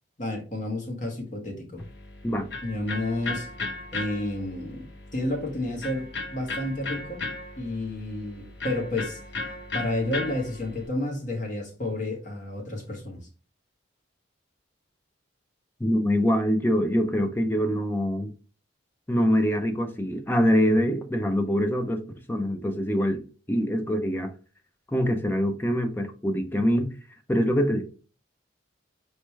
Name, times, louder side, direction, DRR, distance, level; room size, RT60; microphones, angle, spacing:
voice 1, 0.2-1.8 2.6-3.5 3.9-4.9 5.1-7.2 7.6-9.2 9.7-13.2, left 1 dB, 40° left, 1.3 m, -31 dB
Electric guitar, 1.8-10.9, left 3 dB, 60° left, 0.9 m, -36 dB
voice 2, 15.8-18.3 19.1-22.0 22.3-23.2 23.5-24.3 24.9-26.9 27.3-27.8, equal, 10° left, 0.5 m, -24 dB
4.2 x 3.3 x 3.2 m
head